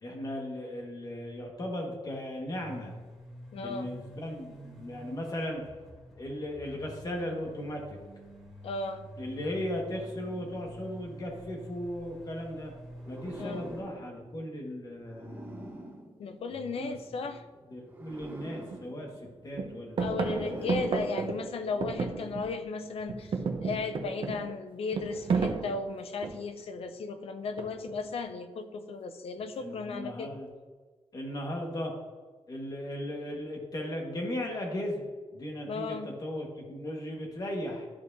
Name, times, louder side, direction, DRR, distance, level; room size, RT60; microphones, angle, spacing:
voice 1, 0.0-2.9 3.5-5.6 6.2-7.8 9.2-12.7 13.1-15.7 16.5-17.2 17.7-19.1 19.4-20.8 21.6-22.0 29.6-30.5 31.1-31.9 32.5-35.0 35.3-37.9, left 1 dB, 35° left, 0 dB, 1.6 m, -37 dB
sound 1, 2.5-13.8, right 1 dB, ahead, 2.1 m, -48 dB
voice 2, 3.5-3.9 8.6-9.1 13.4-13.6 16.2-17.4 20.0-30.3 35.7-36.1, left 4 dB, 65° left, 8 dB, 0.7 m, -35 dB
sound 2, 13.0-17.1 17.8-21.8, right 1 dB, 20° right, 1.0 m, -47 dB
sound 3, 18.1-18.2 18.7-19.3 19.5-22.7 23.0-26.6 27.6-28.1, right 4 dB, 55° right, 0.8 m, -33 dB
12.5 x 4.7 x 2.7 m, 1.3 s
wide cardioid pair, 150°, 11 cm